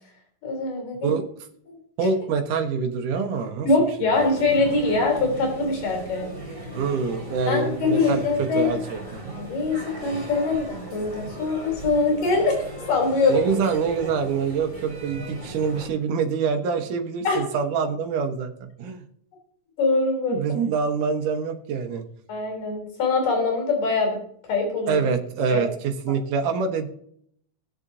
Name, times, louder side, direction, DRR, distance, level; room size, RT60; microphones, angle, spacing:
voice 1, 0.4-1.2 1.7-1.8 3.6-6.3 7.5-8.8 9.3-12.6 12.9-13.6 17.2-17.4 19.8-20.4 22.3-24.2 24.4-25.0 25.5-25.6, left 3 dB, 80° left, 1 dB, 5.0 m, -23 dB
voice 2, 2.0-3.7 4.0-4.1 6.8-8.2 8.6-9.4 13.3-19.0 20.3-22.0 24.9-25.7 26.0-26.9, right 5 dB, 75° right, 4 dB, 2.6 m, -25 dB
sound 1, 4.1-15.9, right 1 dB, 15° right, 3.3 m, -38 dB
19.0 x 6.9 x 2.7 m, 0.66 s
omnidirectional pair, 3.7 m